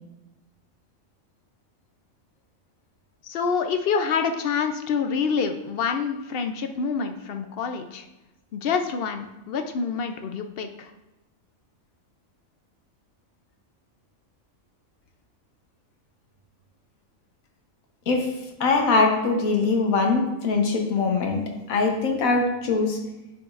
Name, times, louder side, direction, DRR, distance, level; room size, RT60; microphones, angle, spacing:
voice 1, 3.2-8.0 8.5-10.9, left 6 dB, 60° left, 7 dB, 0.6 m, -27 dB
voice 2, 18.6-21.4 21.7-23.0, left 3 dB, 90° left, 2 dB, 1.4 m, -22 dB
9.7 x 4.9 x 2.5 m, 1.0 s
omnidirectional pair, 1.4 m